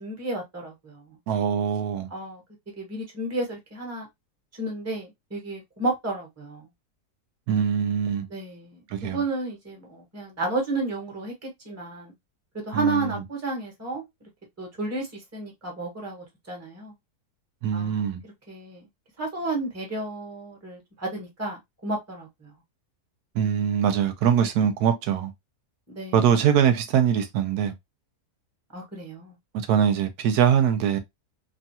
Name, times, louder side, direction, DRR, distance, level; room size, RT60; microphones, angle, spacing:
voice 1, 0.0-1.2 2.1-2.4 2.8-4.1 4.6-6.6 8.3-12.1 12.7-14.0 14.6-16.9 17.7-18.0 18.5-18.8 19.2-22.5 25.9-26.1 28.7-29.3, right 2 dB, 10° right, 1.0 m, -32 dB
voice 2, 1.3-2.1 7.5-8.3 8.9-9.2 12.7-13.2 17.6-18.2 23.3-25.3 26.1-27.7 29.7-31.0, right 8 dB, 80° right, 1.1 m, -22 dB
3.0 x 2.3 x 2.7 m
omnidirectional pair, 1.7 m